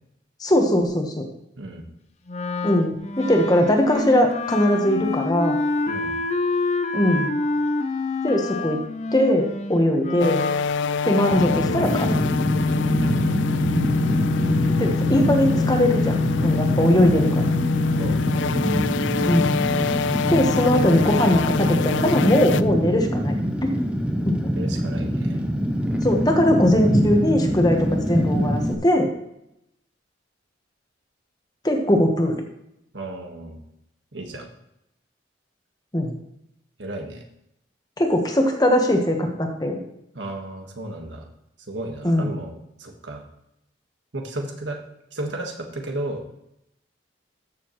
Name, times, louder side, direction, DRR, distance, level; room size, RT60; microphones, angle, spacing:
voice 1, 0.4-1.3 2.6-5.6 6.9-7.3 8.2-8.8 9.1-10.5 11.0-12.1 14.8-17.4 19.2-19.5 20.3-23.3 23.6-23.7 24.2-24.4 26.0-29.1 31.6-32.4 35.9-36.1 38.0-39.8 42.0-42.4, left 1 dB, 20° left, 3 dB, 1.2 m, -20 dB
Wind instrument woodwind instrument, 2.3-10.6, left 3 dB, 35° left, 0.6 m, -27 dB
sound 1, 10.2-22.6, left 6 dB, 80° left, 0.4 m, -25 dB
Fire, 11.3-28.7, equal, 5° right, 0.7 m, -24 dB
voice 2, 13.0-13.4 18.0-18.5 24.6-25.4 32.9-33.6 34.1-34.5 36.8-37.2 40.1-41.2 41.7-42.5 42.8-43.2 44.1-44.8 45.1-46.2, right 1 dB, 80° right, 3 dB, 1.6 m, -33 dB
13.5 x 6.8 x 3.1 m, 0.81 s
head